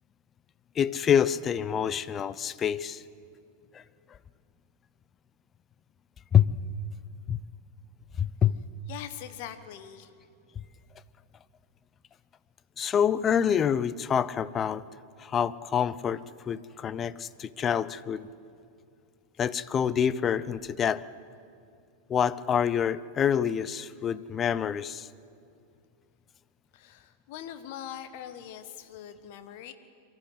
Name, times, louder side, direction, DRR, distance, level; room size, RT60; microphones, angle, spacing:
voice 1, 0.8-3.0 3.7-3.8 6.3-6.5 7.3-7.4 8.2-8.5 12.8-14.8 15.2-16.2 16.5-18.3 19.4-21.0 22.1-25.1, left 8 dB, 25° left, 17 dB, 0.6 m, -26 dB
voice 2, 8.9-10.1 26.7-29.7, left 10 dB, 50° left, 10 dB, 1.3 m, -42 dB
23.5 x 13.5 x 8.2 m, 2.4 s
figure-of-eight pair, 90°, 0 cm